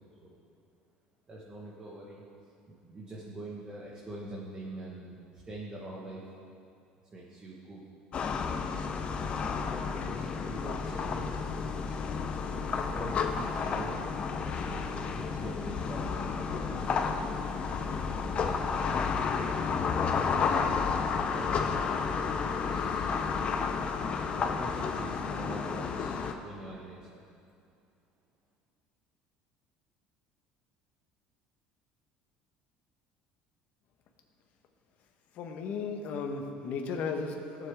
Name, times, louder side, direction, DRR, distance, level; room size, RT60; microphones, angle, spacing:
voice 1, 1.3-2.2 2.7-6.2 7.1-7.8 8.8-10.2 10.5-11.6 12.7-14.0 14.4-17.2 18.0-18.9 21.3-22.0 22.4-23.2 24.4-27.2, right 1 dB, 25° right, -4 dB, 1.5 m, -44 dB
sound 1, 8.1-26.3, left 5 dB, 35° left, 0.7 m, -31 dB
sound 2, 9.3-10.3 10.6-10.7 11.0-11.4 11.7-14.1 14.5-14.8 15.1-22.4, equal, 75° right, 3.1 m, -48 dB
voice 2, 35.4-37.7, left 5 dB, 55° left, 3 dB, 1.3 m, -35 dB
17.5 x 7.4 x 3.6 m, 2.5 s
cardioid pair, 130°, 3 cm